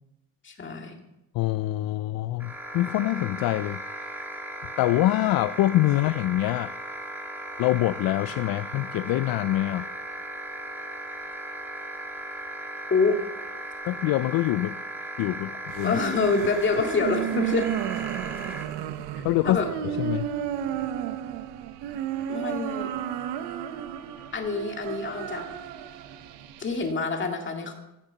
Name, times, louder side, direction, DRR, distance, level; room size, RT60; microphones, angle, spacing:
voice 1, 0.4-1.0 12.9-13.2 15.8-17.7 19.1-19.7 22.3-22.9 24.3-25.5 26.6-27.7, left 4 dB, 30° left, 3 dB, 2.1 m, -26 dB
voice 2, 1.3-4.3 4.8-6.7 7.6-9.9 13.9-14.8 15.2-16.0 19.2-20.3, left 16 dB, 60° left, 14 dB, 0.5 m, -25 dB
sound 1, 2.4-18.7, right 1 dB, 5° right, 1.7 m, -37 dB
sound 2, 15.7-26.9, right 10 dB, 90° right, 0.9 m, -33 dB
15.5 x 6.7 x 7.4 m, 0.90 s
cardioid pair, 145°, 40 cm